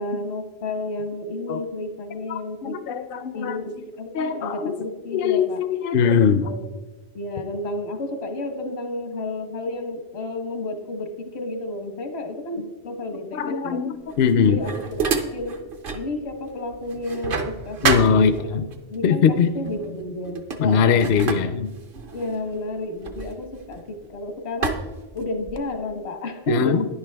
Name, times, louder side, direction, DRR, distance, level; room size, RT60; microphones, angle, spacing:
voice 1, 0.0-2.8 3.3-5.6 6.4-6.7 7.1-13.8 14.4-15.6 15.9-18.3 18.9-19.2 19.5-21.1 22.1-24.9 25.1-26.9, left 2 dB, 85° left, 6 dB, 1.5 m, -31 dB
voice 2, 2.3-3.7 4.1-4.8 5.1-6.5 13.3-14.7 17.8-18.7 19.0-19.5 20.6-21.7 26.5-26.8, left 6 dB, 65° left, 11 dB, 0.7 m, -21 dB
sound 1, 14.1-16.1 16.5-18.8 19.6-19.9 20.2-24.1 24.6-25.8, right 4 dB, 60° right, 0.9 m, -29 dB
10.5 x 9.9 x 3.4 m, 1.2 s
omnidirectional pair, 1.1 m